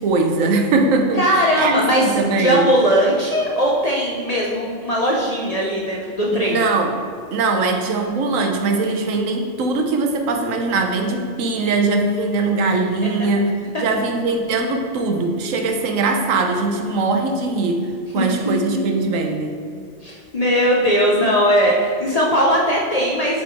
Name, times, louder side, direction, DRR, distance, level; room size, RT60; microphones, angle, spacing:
voice 1, 0.0-1.3 1.6-2.7 6.3-6.9 7.3-19.6, right 3 dB, 80° right, 4 dB, 1.1 m, -21 dB
voice 2, 1.2-2.0 2.3-6.6 13.0-13.3 13.7-13.8 18.2-18.8 20.0-23.4, equal, 45° left, -3 dB, 0.5 m, -19 dB
6.5 x 3.4 x 4.4 m, 2.2 s
omnidirectional pair, 1.3 m